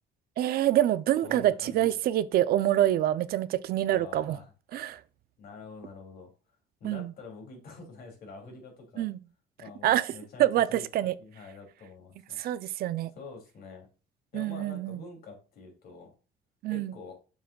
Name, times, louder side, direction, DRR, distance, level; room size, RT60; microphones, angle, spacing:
voice 1, 0.4-4.4 4.7-5.0 6.8-7.1 9.0-9.2 9.8-10.1 10.4-11.1 12.4-13.1 14.3-15.0 16.6-16.9, right 13 dB, 65° right, 0.5 m, -26 dB
voice 2, 1.2-1.9 3.9-4.5 5.4-6.3 6.8-9.1 9.6-10.9 11.2-12.6 13.2-13.9 14.3-16.1 16.7-17.2, left 4 dB, 60° left, 2.9 m, -46 dB
7.0 x 6.0 x 2.3 m
cardioid pair, 110°, 17 cm